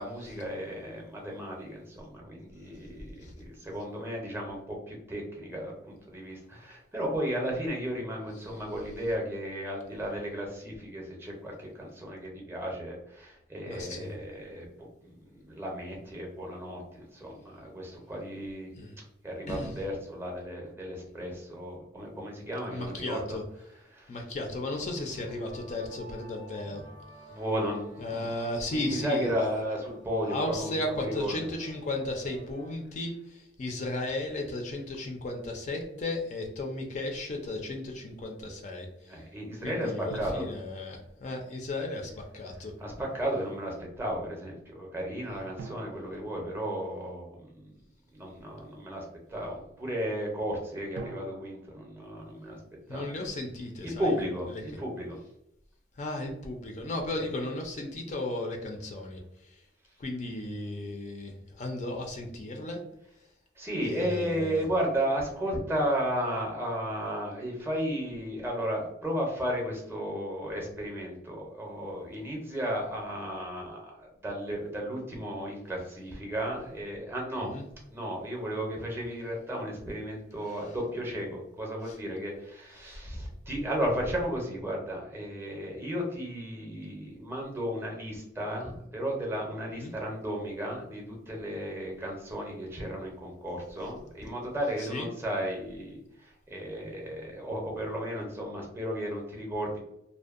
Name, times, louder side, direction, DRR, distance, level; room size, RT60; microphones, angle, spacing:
voice 1, 0.0-14.7 15.0-18.7 19.2-23.4 23.9-24.1 27.3-31.3 39.1-40.5 42.8-47.7 48.1-52.6 52.9-53.1 54.0-55.2 57.1-57.3 63.6-77.5 77.9-99.8, equal, 15° right, -1 dB, 0.5 m, -34 dB
voice 2, 13.7-14.2 18.8-19.0 19.5-19.7 22.7-23.4 24.1-26.8 28.0-29.5 30.2-39.2 39.6-42.7 52.9-54.1 54.5-54.6 56.0-59.2 60.0-62.8 63.9-64.6 77.4-77.6 80.5-80.6 81.9-82.0 82.8-83.3 89.7-89.9 94.8-95.1, left 2 dB, 40° left, 2 dB, 0.4 m, -35 dB
sound 1, 24.7-32.8, right 1 dB, 90° left, 0.8 m, -53 dB
sound 2, 40.1-41.7 45.6-47.5 50.9-53.2, right 4 dB, 70° right, 0.3 m, -48 dB
2.6 x 2.1 x 2.4 m, 0.79 s
head